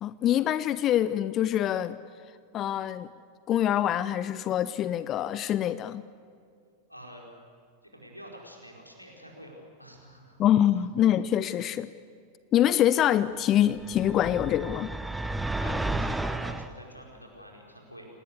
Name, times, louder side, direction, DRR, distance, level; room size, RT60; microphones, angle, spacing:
voice 1, 0.0-2.0 2.5-3.1 3.5-6.0 10.4-11.9 12.5-14.9, left 11 dB, 30° left, 16 dB, 0.6 m, -25 dB
voice 2, 6.9-7.3 7.8-10.4 15.6-18.1, equal, 90° left, 0 dB, 5.0 m, -47 dB
sound 1, 13.8-16.7, right 2 dB, 5° right, 1.0 m, -32 dB
28.0 x 19.0 x 8.2 m, 2.3 s
figure-of-eight pair, 90°, 0 cm